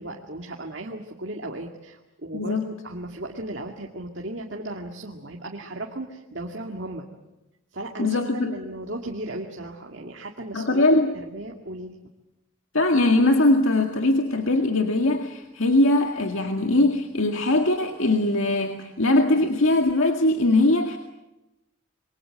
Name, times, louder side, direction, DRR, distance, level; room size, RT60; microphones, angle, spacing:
voice 1, 0.0-2.6 2.8-7.1 7.7-10.8 11.1-12.0, right 1 dB, 60° right, 1 dB, 2.1 m, -36 dB
voice 2, 2.3-2.7 8.0-8.6 10.5-11.1 12.7-21.0, left 2 dB, 75° left, 4 dB, 2.0 m, -21 dB
27.0 x 23.5 x 7.7 m, 0.98 s
head